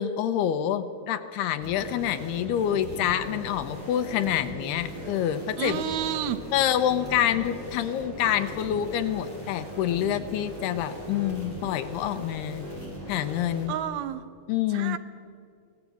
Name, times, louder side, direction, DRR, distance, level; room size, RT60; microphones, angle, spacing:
voice 1, 0.0-5.8 6.5-12.6 13.1-13.8 14.5-15.0, left 10 dB, 85° left, 10 dB, 2.9 m, -27 dB
sound 1, 1.6-13.7, equal, 15° right, 8.3 m, -39 dB
voice 2, 5.6-6.4 13.7-14.2 14.7-15.0, right 10 dB, 75° right, 11 dB, 2.6 m, -30 dB
25.0 x 18.0 x 8.4 m, 2.3 s
omnidirectional pair, 4.7 m